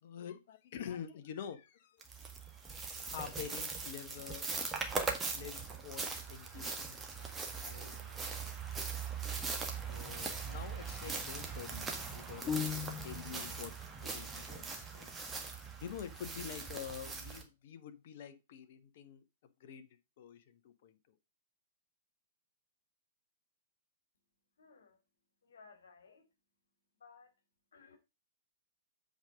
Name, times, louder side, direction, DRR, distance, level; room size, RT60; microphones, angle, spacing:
voice 1, 0.0-2.1 3.1-4.5 5.3-8.6 9.9-15.1 15.8-19.2 19.6-21.2 26.1-26.2, left 8 dB, 50° left, 1.2 m, -48 dB
sound 1, 2.0-17.4, right 4 dB, 15° right, 1.7 m, -41 dB
sound 2, 12.5-13.5, left 8 dB, 25° left, 0.5 m, -37 dB
voice 2, 24.6-25.0 25.4-26.3 27.0-27.3 27.7-28.0, left 5 dB, 65° left, 2.4 m, -59 dB
8.0 x 5.2 x 5.0 m
figure-of-eight pair, 110°, 0 cm